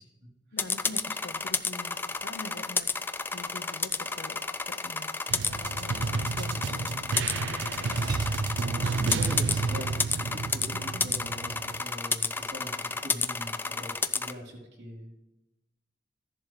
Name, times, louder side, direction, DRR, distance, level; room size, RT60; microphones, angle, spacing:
voice 1, 0.5-6.9 7.2-8.0 10.2-10.4 10.7-11.1, left 2 dB, 75° left, 10 dB, 0.8 m, -45 dB
sound 1, 0.6-14.3, left 4 dB, 10° left, 0.3 m, -31 dB
sound 2, 5.3-11.8, right 4 dB, 85° right, 0.4 m, -31 dB
sound 3, 5.7-5.9 6.3-7.0 7.8-8.7 9.4-10.0 12.2-12.3 12.4-12.5, right 3 dB, 20° right, 0.8 m, -47 dB
voice 2, 9.0-15.1, equal, 70° right, -2 dB, 3.5 m, -41 dB
15.0 x 11.0 x 3.3 m, 0.97 s
head